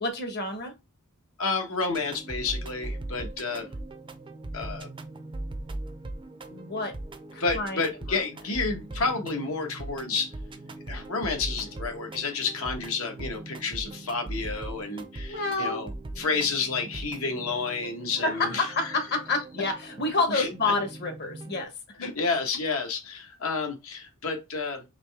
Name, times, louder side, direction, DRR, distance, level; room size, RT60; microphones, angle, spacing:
voice 1, 0.0-0.7 6.5-6.9 7.3-8.2 15.3-15.8 18.2-22.0, left 3 dB, 50° left, 1.2 m, -29 dB
voice 2, 1.4-3.7 4.5-4.9 7.4-10.3 10.9-15.9 16.2-18.9 20.3-20.5 22.0-24.8, left 4 dB, 70° left, 1.2 m, -30 dB
sound 1, 1.9-21.6, right 2 dB, 25° right, 0.5 m, -40 dB
4.0 x 3.1 x 3.4 m
head